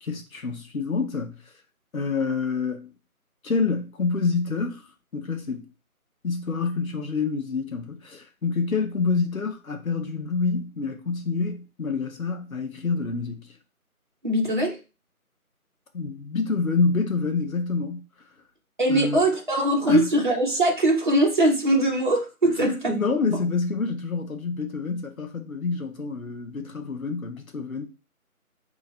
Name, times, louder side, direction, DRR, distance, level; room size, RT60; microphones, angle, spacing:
voice 1, 0.0-1.4 1.9-2.9 3.4-4.9 5.1-5.7 6.2-13.5 15.9-18.0 18.9-19.2 19.9-20.1 22.6-27.8, left 4 dB, 65° left, 0.9 m, -27 dB
voice 2, 14.2-14.8 18.8-22.9 23.2-23.4, right 1 dB, 35° right, 0.9 m, -22 dB
3.9 x 2.9 x 4.1 m
figure-of-eight pair, 160°, 44 cm